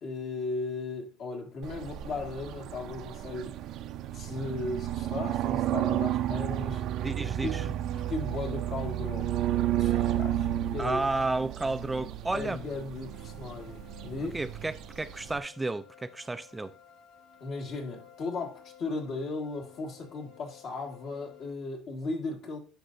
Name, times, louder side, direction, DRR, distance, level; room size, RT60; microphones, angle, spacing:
voice 1, 0.0-3.5 4.1-6.8 7.4-7.8 8.1-9.3 9.8-11.0 12.3-14.4 17.4-22.6, left 3 dB, 55° left, 1.8 m, -36 dB
sound 1, 1.6-15.4, right 12 dB, 65° right, 0.5 m, -32 dB
voice 2, 7.0-7.6 10.8-12.6 14.3-16.7, right 2 dB, 15° right, 0.3 m, -32 dB
sound 2, 12.9-21.5, left 9 dB, 75° left, 1.9 m, -55 dB
10.0 x 5.2 x 2.6 m
supercardioid pair, 90°, 0 cm